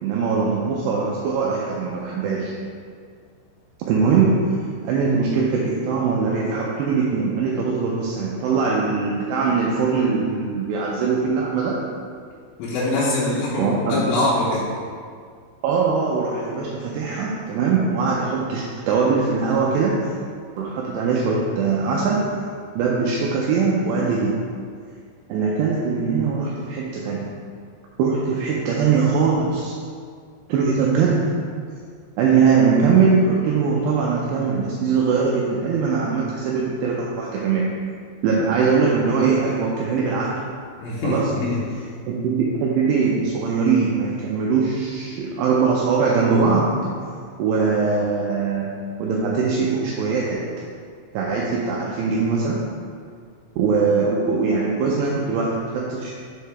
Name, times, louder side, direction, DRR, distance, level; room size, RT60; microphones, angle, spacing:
voice 1, 0.0-2.5 3.8-4.6 4.8-11.9 13.6-14.0 15.6-20.1 20.6-22.3 22.8-24.4 25.3-27.3 28.0-29.7 30.5-31.3 32.2-37.7 38.2-40.3 41.0-41.3 42.1-46.9 47.4-48.7 49.0-50.6 51.1-52.6 53.6-56.1, right 5 dB, 85° right, -3 dB, 2.5 m, -21 dB
voice 2, 12.6-14.7 40.8-41.6, left 2 dB, 90° left, -7 dB, 3.3 m, -23 dB
7.3 x 4.7 x 3.4 m, 2.1 s
omnidirectional pair, 5.5 m